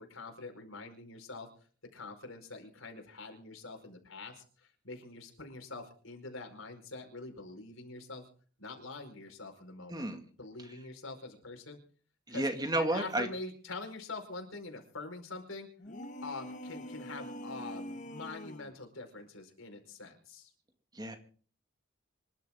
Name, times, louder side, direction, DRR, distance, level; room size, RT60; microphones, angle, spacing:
voice 1, 0.0-1.5 1.9-8.2 8.6-10.0 10.4-11.8 12.3-12.5 12.9-15.7 16.2-20.5, left 3 dB, 75° left, 4 dB, 4.8 m, -45 dB
voice 2, 9.9-10.2 12.3-13.3 20.9-21.2, right 1 dB, 20° right, 6 dB, 2.1 m, -32 dB
sound 1, 15.8-18.8, equal, 40° left, 1.3 m, -44 dB
26.5 x 12.0 x 3.7 m, 0.43 s
head